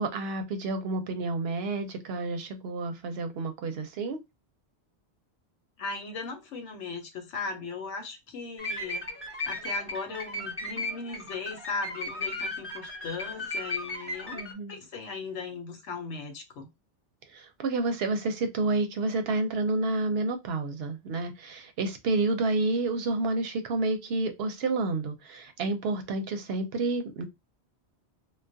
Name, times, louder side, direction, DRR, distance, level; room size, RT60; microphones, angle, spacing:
voice 1, 0.0-4.2 14.3-14.7 17.3-27.3, right 3 dB, 65° right, 0.8 m, -29 dB
voice 2, 5.8-9.1 9.5-14.4 14.7-16.7, left 4 dB, 85° left, 1.0 m, -37 dB
sound 1, 8.6-14.5, left 2 dB, 15° left, 0.9 m, -35 dB
2.3 x 2.1 x 2.5 m
omnidirectional pair, 1.2 m